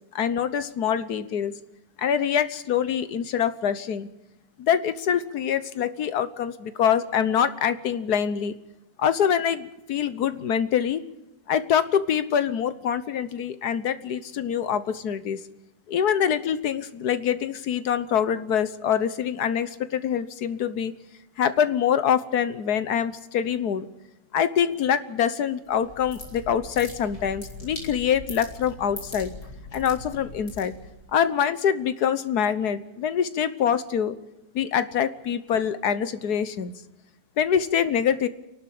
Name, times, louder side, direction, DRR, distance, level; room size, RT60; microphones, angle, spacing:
voice 1, 0.1-1.5 2.0-4.1 4.6-8.5 9.0-11.0 11.5-15.4 15.9-20.9 21.4-23.9 24.3-29.3 29.7-30.7 31.1-34.2 34.5-36.7 37.4-38.3, left 8 dB, 65° left, 13 dB, 1.5 m, -25 dB
sound 1, 25.7-31.1, left 2 dB, 85° left, 4.5 m, -41 dB
27.5 x 12.0 x 8.6 m, 0.93 s
omnidirectional pair, 1.8 m